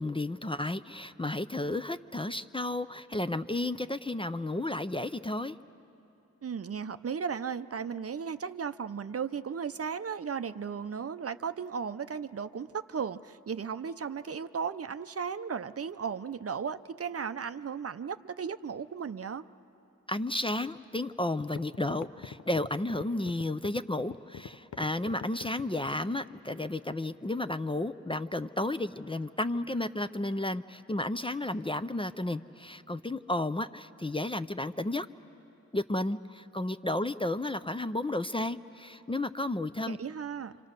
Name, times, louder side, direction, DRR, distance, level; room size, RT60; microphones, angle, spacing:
voice 1, 0.0-5.6 20.1-35.1 35.7-40.0, left 2 dB, 15° left, 11 dB, 0.5 m, -32 dB
voice 2, 6.4-19.5 39.9-40.5, right 6 dB, 50° right, 12 dB, 0.6 m, -35 dB
sound 1, 20.9-21.0 21.4-26.1, left 6 dB, 65° left, 0.6 m, -43 dB
26.5 x 25.5 x 6.6 m, 2.9 s
cardioid pair, 60°, 31 cm